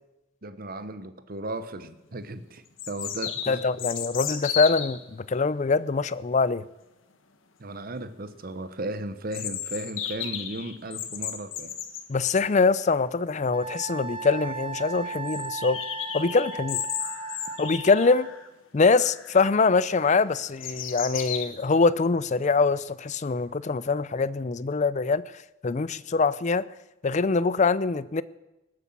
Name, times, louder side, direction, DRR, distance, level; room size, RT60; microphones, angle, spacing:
voice 1, 0.4-3.6 7.6-11.8, right 1 dB, 45° right, 12 dB, 1.0 m, -36 dB
sound 1, 1.8-1.9 2.8-5.0 9.3-12.1 13.7-13.8 14.0-14.1 14.5-14.6 15.3-18.5 18.9-19.4 19.9-21.4, left 9 dB, 80° left, 1.3 m, -34 dB
voice 2, 3.5-6.6 12.1-15.8 16.1-16.8 17.6-18.3 18.7-25.2 25.6-26.6 27.0-28.2, left 4 dB, 35° left, 18 dB, 0.5 m, -23 dB
Wind instrument woodwind instrument, 13.5-18.4, right 4 dB, 25° right, 1.2 m, -36 dB
19.0 x 8.1 x 7.3 m, 0.97 s
head